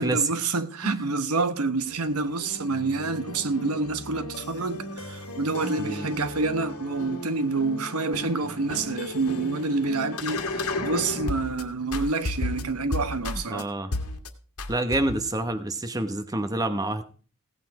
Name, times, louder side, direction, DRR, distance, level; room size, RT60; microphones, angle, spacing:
voice 1, 0.0-13.7, right 3 dB, 90° right, 1.1 m, -28 dB
sound 1, 1.9-11.6 11.9-13.6 13.9-14.3 14.6-15.3, left 2 dB, 80° left, 1.6 m, -34 dB
voice 2, 5.6-6.1 13.3-13.9 14.7-17.0, right 2 dB, 15° right, 1.0 m, -28 dB
16.5 x 8.4 x 4.8 m
head